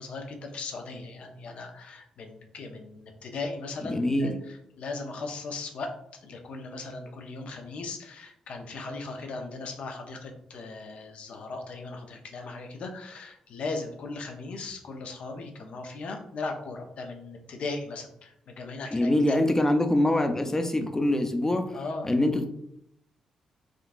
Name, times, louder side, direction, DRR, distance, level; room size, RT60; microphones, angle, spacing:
voice 1, 0.0-5.9 6.2-19.4 21.7-22.1, left 3 dB, 65° left, 3 dB, 0.6 m, -38 dB
voice 2, 3.9-4.3 18.9-21.6 22.0-22.5, left 1 dB, 20° left, 6 dB, 0.5 m, -24 dB
3.7 x 2.3 x 2.5 m, 0.76 s
supercardioid pair, 50°, 2 cm